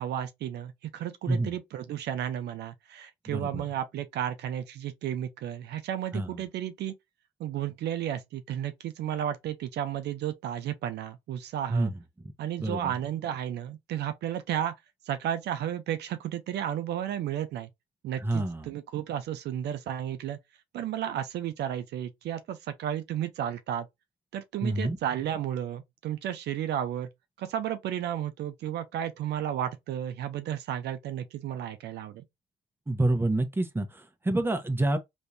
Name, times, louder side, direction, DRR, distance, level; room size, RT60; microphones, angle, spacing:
voice 1, 0.0-6.9 7.4-11.9 12.4-14.7 15.1-17.7 18.0-20.4 20.7-23.9 24.3-27.1 27.4-32.2, right 10 dB, 70° right, 0.6 m, -33 dB
voice 2, 3.3-3.6 6.1-6.4 11.7-12.3 12.6-12.9 18.2-18.7 24.6-25.0 32.9-35.0, right 2 dB, 10° right, 0.9 m, -28 dB
3.5 x 3.1 x 2.7 m
supercardioid pair, 65°, 18 cm